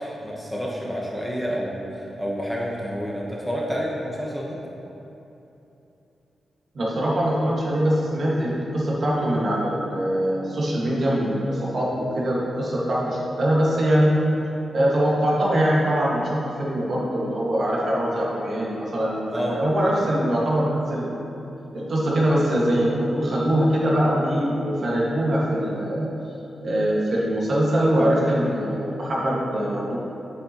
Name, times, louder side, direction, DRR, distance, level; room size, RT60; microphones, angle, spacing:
voice 1, 0.0-4.6 19.3-19.6, equal, ahead, -4 dB, 0.9 m, -29 dB
voice 2, 6.7-14.1 14.7-21.2 21.7-26.1 26.6-30.0, right 1 dB, 55° right, -5 dB, 1.6 m, -23 dB
8.7 x 6.5 x 3.0 m, 2.9 s
wide cardioid pair, 105°, 0 cm